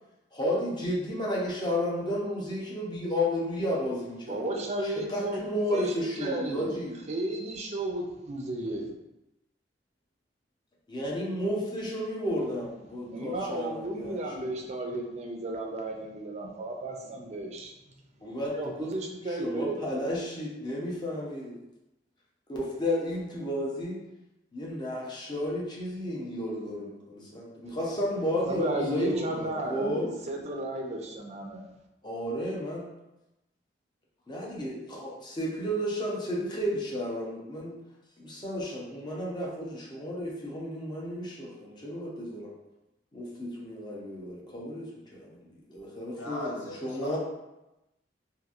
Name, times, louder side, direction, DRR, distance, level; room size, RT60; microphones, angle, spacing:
voice 1, 0.3-4.5 4.8-6.9 10.9-14.2 14.4-14.6 18.2-18.9 19.3-21.6 22.5-24.0 24.5-30.1 32.0-32.8 34.3-37.7 38.2-42.5 43.1-44.9 45.1-45.4 45.7-47.2, left 1 dB, 25° left, -4 dB, 0.6 m, -32 dB
voice 2, 4.3-6.8 7.1-8.9 13.1-17.7 18.5-20.0 28.5-31.6, right 1 dB, 40° right, 1 dB, 0.4 m, -34 dB
voice 3, 46.1-47.2, left 1 dB, 90° left, -2 dB, 0.7 m, -38 dB
2.8 x 2.6 x 2.4 m, 0.94 s
head